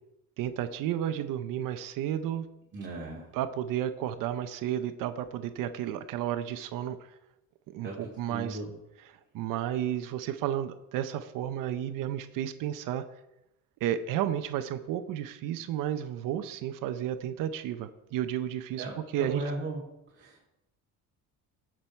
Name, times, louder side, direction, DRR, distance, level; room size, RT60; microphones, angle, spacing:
voice 1, 0.4-2.5 3.3-7.1 7.7-8.6 9.3-13.0 13.8-18.8 19.1-19.4, right 11 dB, 75° right, 10 dB, 0.8 m, -32 dB
voice 2, 2.7-3.3 7.8-8.0 8.3-8.7 18.8-19.8 20.1-20.4, right 2 dB, 35° right, -4 dB, 2.7 m, -36 dB
17.5 x 6.2 x 4.4 m, 0.90 s
cardioid pair, 115°, 33 cm